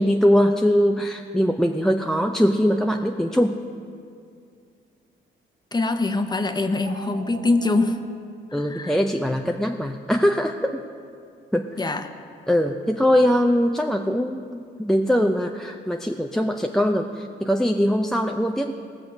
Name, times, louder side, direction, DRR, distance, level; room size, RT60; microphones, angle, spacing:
voice 1, 0.0-3.6 8.5-10.8 11.5-11.7 12.5-18.7, equal, ahead, 3 dB, 0.5 m, -21 dB
voice 2, 5.7-8.0 8.7-8.9 11.8-12.1, left 2 dB, 20° left, 7 dB, 0.9 m, -23 dB
sound 1, 6.7-7.9, right 5 dB, 60° right, 1.0 m, -42 dB
18.0 x 6.4 x 5.3 m, 2.3 s
cardioid pair, 90°, 20 cm